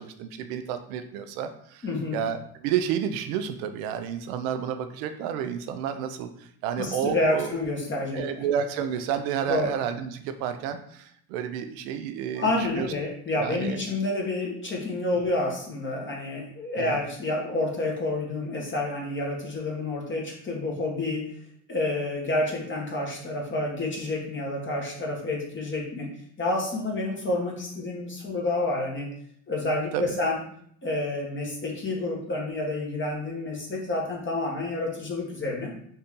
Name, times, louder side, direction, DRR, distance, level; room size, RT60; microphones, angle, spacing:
voice 1, 0.0-6.3 6.6-7.5 8.1-12.9 13.4-13.8 16.8-17.0 29.9-30.2, right 8 dB, 90° right, 8 dB, 0.6 m, -30 dB
voice 2, 1.8-2.2 6.8-8.4 9.5-9.7 12.3-21.3 21.7-26.1 26.4-29.1 29.5-30.4 30.8-35.7, left 2 dB, 25° left, -2 dB, 1.4 m, -29 dB
4.1 x 2.6 x 3.6 m, 0.65 s
supercardioid pair, 90°, 42 cm